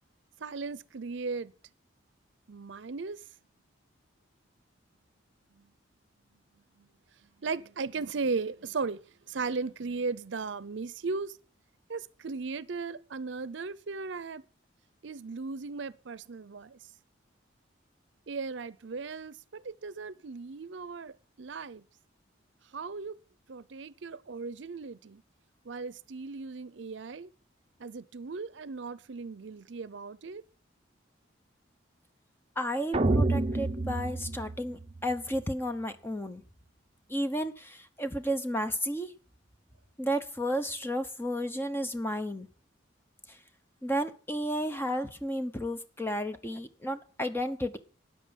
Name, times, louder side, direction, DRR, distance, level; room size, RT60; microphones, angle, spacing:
voice 1, 0.4-1.5 2.5-3.2 5.5-5.7 6.8-6.9 7.4-11.4 11.9-14.4 15.0-16.9 18.3-21.8 22.6-23.2 23.5-25.2 25.6-27.3 27.8-30.4, right 4 dB, 70° right, 0.6 m, -37 dB
voice 2, 32.6-36.4 37.1-39.1 40.0-42.5 43.3-43.4 43.8-47.8, equal, 10° left, 0.9 m, -32 dB
sound 1, 32.9-35.2, right 2 dB, 30° right, 0.7 m, -28 dB
13.0 x 9.0 x 5.2 m
head